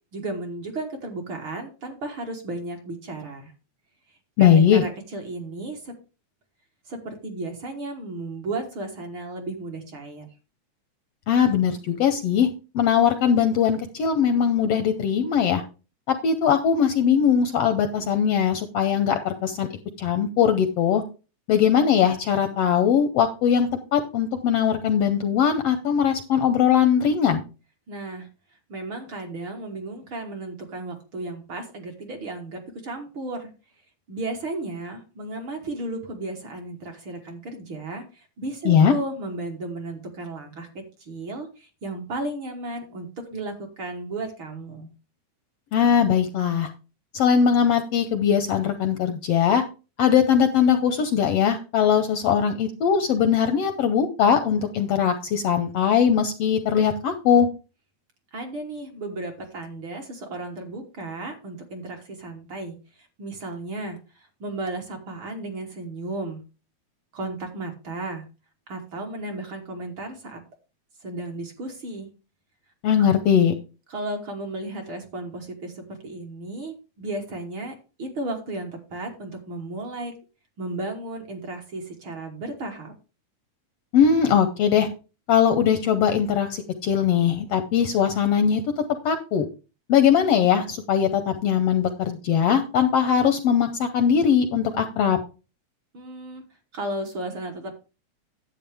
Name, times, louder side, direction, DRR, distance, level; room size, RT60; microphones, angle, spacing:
voice 1, 0.1-3.5 4.4-5.9 6.9-10.3 27.9-28.3 28.7-33.5 34.1-44.9 58.3-66.4 67.1-68.2 68.7-70.4 71.0-72.1 73.9-80.1 80.6-82.9 95.9-96.4 96.7-97.7, right 2 dB, 50° right, 2 dB, 1.8 m, -34 dB
voice 2, 4.4-4.8 11.3-15.6 16.1-19.7 20.0-21.0 21.5-27.4 38.6-38.9 45.7-46.7 47.1-49.6 50.0-57.5 72.8-73.5 83.9-84.9 85.3-89.5 89.9-95.2, left 8 dB, 75° left, 8 dB, 1.5 m, -20 dB
10.5 x 7.9 x 3.4 m, 0.32 s
omnidirectional pair, 3.4 m